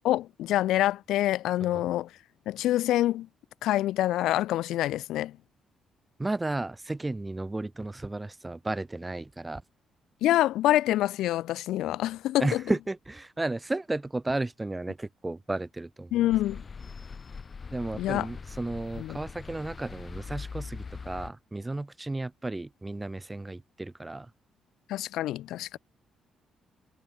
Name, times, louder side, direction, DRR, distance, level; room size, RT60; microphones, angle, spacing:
voice 1, 0.0-2.1 2.5-3.3 3.6-5.4 10.2-12.6 16.1-16.6 18.0-18.3 19.0-19.2 24.9-25.8, left 14 dB, 85° left, 2.5 m, -26 dB
voice 2, 6.2-9.6 12.4-16.1 17.7-24.3, right 2 dB, 15° right, 6.2 m, -33 dB
sound 1, 16.3-21.3, left 5 dB, 35° left, 5.2 m, -41 dB
cardioid pair, 90°, 0 cm